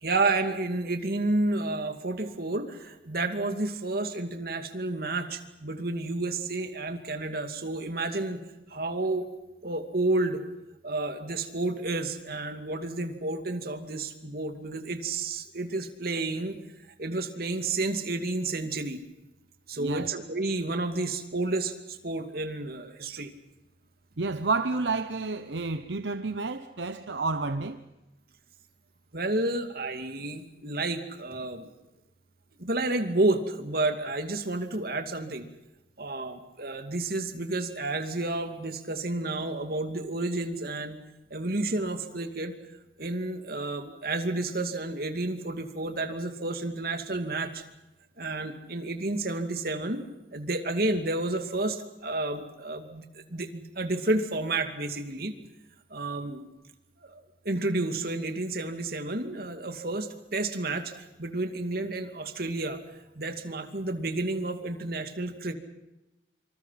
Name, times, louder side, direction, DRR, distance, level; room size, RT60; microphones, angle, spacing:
voice 1, 0.0-8.4 8.7-9.2 9.6-10.4 10.8-16.6 17.0-19.0 19.7-23.3 29.1-31.7 32.6-35.5 36.0-41.0 41.3-42.5 43.0-47.6 48.2-50.0 50.3-55.3 55.9-56.5 57.0-57.2 57.4-62.8 63.2-65.5, right 2 dB, 55° right, 2.5 m, -30 dB
voice 2, 19.8-20.1 24.2-27.8, right 3 dB, 80° right, 1.0 m, -30 dB
26.0 x 26.0 x 5.9 m
head